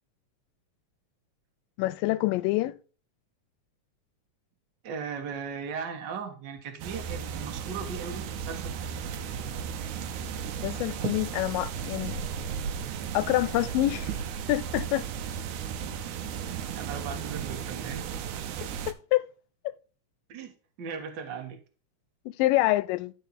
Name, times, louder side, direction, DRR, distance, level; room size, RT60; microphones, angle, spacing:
voice 1, 1.8-2.8 10.6-12.2 13.1-14.1 14.5-15.1 18.9-19.3 22.3-23.1, left 17 dB, 90° left, 2.2 m, -26 dB
voice 2, 4.8-9.0 16.7-18.0 18.5-18.6 20.3-20.5 20.8-21.6 22.6-22.7, right 6 dB, 50° right, 1.4 m, -38 dB
sound 1, 6.8-18.9, right 7 dB, 75° right, 2.0 m, -35 dB
12.5 x 4.4 x 4.1 m
omnidirectional pair, 3.8 m